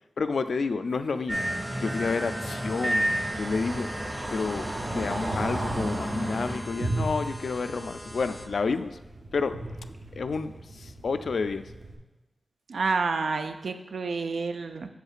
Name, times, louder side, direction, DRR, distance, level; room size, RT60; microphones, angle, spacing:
voice 1, 0.2-1.4 1.8-3.1 3.4-3.9 4.3-9.0 9.3-9.5 10.1-11.6, left 4 dB, 80° left, 10 dB, 0.3 m, -30 dB
sound 1, 1.3-8.5, equal, ahead, 0.5 m, -44 dB
sound 2, 1.3-6.6, right 1 dB, 35° right, 1.1 m, -31 dB
sound 3, 3.0-11.9, right 2 dB, 55° right, 0.8 m, -38 dB
voice 2, 12.7-14.9, right 4 dB, 90° right, 7 dB, 0.4 m, -29 dB
7.9 x 6.4 x 2.4 m, 1.1 s
wide cardioid pair, 90°, 0 cm